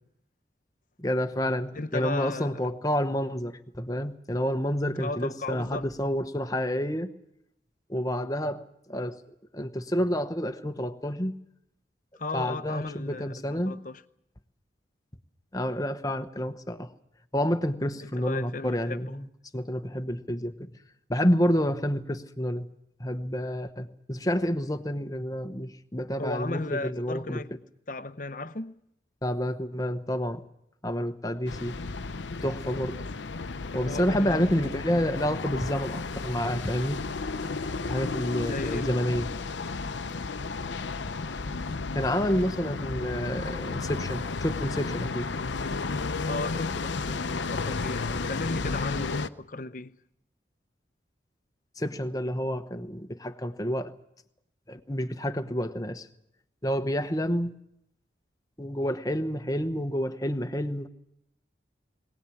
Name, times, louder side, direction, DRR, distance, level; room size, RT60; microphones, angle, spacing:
voice 1, 1.0-7.1 7.9-8.6 8.9-9.2 9.5-11.4 12.3-13.8 15.5-16.9 17.3-19.3 19.5-20.7 21.1-22.7 23.0-27.4 29.2-30.4 30.8-31.7 32.4-33.0 33.7-37.0 37.9-39.3 41.9-45.3 51.8-53.9 54.7-56.1 56.6-57.5 58.6-60.9, equal, 20° left, 1.0 m, -29 dB
voice 2, 1.7-2.6 5.0-5.9 12.2-14.0 18.0-19.2 26.2-27.6 27.9-28.8 33.8-34.5 38.4-39.3 46.3-50.0, left 2 dB, 45° left, 0.8 m, -35 dB
sound 1, 31.5-49.3, left 4 dB, 80° left, 0.8 m, -33 dB
22.0 x 18.0 x 8.5 m
head